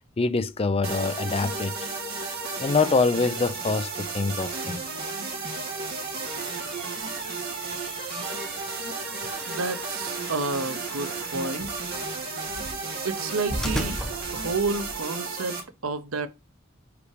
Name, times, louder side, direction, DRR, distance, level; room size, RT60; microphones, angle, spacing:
voice 1, 0.2-1.9 2.6-4.8, left 4 dB, 30° left, 0.4 m, -25 dB
sound 1, 0.8-15.6, right 4 dB, 50° right, 2.4 m, -33 dB
sound 2, 6.2-15.0, equal, 5° left, 1.1 m, -38 dB
voice 2, 9.5-11.7 13.0-14.0 14.3-15.6 15.8-16.3, right 3 dB, 90° right, 0.9 m, -30 dB
5.0 x 4.8 x 4.8 m
head